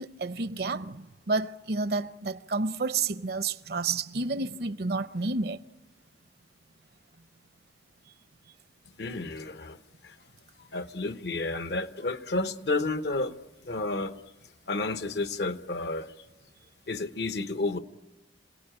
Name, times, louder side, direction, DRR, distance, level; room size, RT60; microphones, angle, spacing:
voice 1, 0.0-5.6, right 3 dB, 60° right, 0.7 m, -30 dB
voice 2, 9.0-9.8 10.0-10.2 10.7-13.4 13.6-14.2 14.7-16.3 16.9-17.8, left 2 dB, 65° left, 0.9 m, -31 dB
27.0 x 18.0 x 8.9 m
head